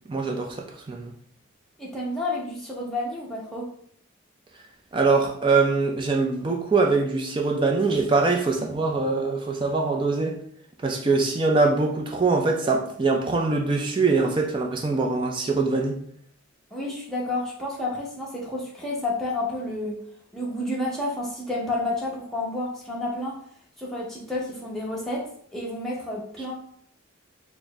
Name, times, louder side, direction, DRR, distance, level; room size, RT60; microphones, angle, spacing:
voice 1, 0.1-0.6 0.9-1.1 4.9-10.4 10.8-16.0, right 3 dB, 25° right, 1 dB, 0.3 m, -23 dB
voice 2, 1.8-3.7 16.7-20.0 20.3-23.4 23.8-26.5, left 2 dB, ahead, -5 dB, 0.7 m, -30 dB
3.9 x 2.1 x 3.4 m, 0.63 s
head